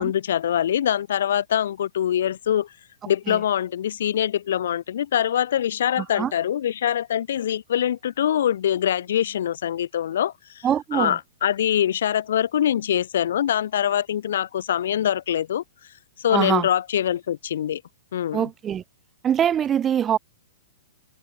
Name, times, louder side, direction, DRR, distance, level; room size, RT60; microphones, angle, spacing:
voice 1, 0.0-2.7 3.1-10.7 10.9-15.6 16.2-17.8 18.1-18.5, left 10 dB, 70° left, 2.2 m, -24 dB
voice 2, 6.0-6.3 10.6-11.2 16.3-16.7 18.3-18.8 19.2-20.2, right 9 dB, 20° right, 2.6 m, -23 dB
hypercardioid pair, 120°, 0 cm